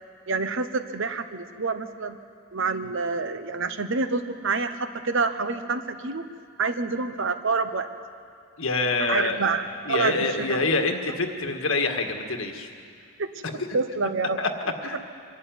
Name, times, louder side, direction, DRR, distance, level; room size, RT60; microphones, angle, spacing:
voice 1, 0.3-2.2 2.5-6.3 6.6-7.9 9.1-10.6 13.2-13.3 13.5-14.4, right 4 dB, 65° right, 10 dB, 1.0 m, -27 dB
voice 2, 8.6-12.7 13.5-13.7 14.4-14.5 14.8-15.0, left 3 dB, 70° left, 4 dB, 1.8 m, -26 dB
24.0 x 12.0 x 9.4 m, 2.4 s
head